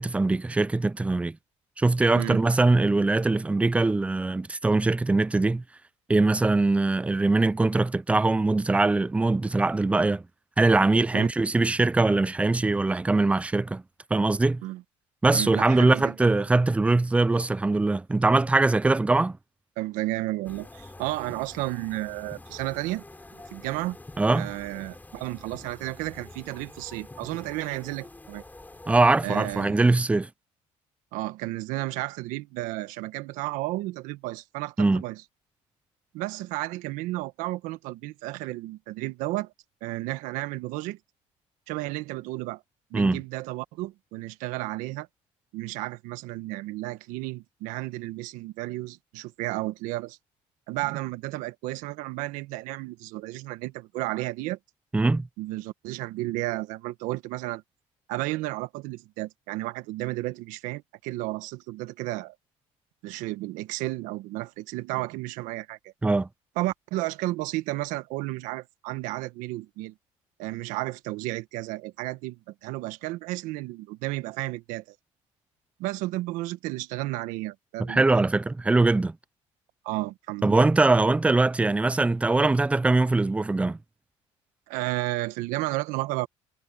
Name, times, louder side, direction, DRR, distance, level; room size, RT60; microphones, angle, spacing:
voice 1, 0.0-1.4 1.8-5.6 6.1-10.2 10.6-13.8 14.1-14.6 15.2-19.4 24.2-24.5 28.9-30.3 34.8-35.0 42.9-43.2 54.9-55.3 66.0-66.3 77.8-79.2 80.4-83.8, right 2 dB, 10° right, 0.4 m, -22 dB
voice 2, 15.3-16.5 19.8-23.0 23.5-24.0 24.3-28.4 29.2-29.9 31.1-35.2 36.1-39.5 39.8-41.0 41.7-42.6 42.9-45.1 45.5-50.2 50.7-54.6 55.4-57.6 58.1-62.3 63.0-65.9 66.6-69.9 70.4-74.9 75.8-78.3 79.8-80.5 84.7-86.3, right 18 dB, 85° right, 1.4 m, -32 dB
sound 1, 20.4-29.6, left 2 dB, 15° left, 6.4 m, -47 dB
cardioid pair, 95°, 13 cm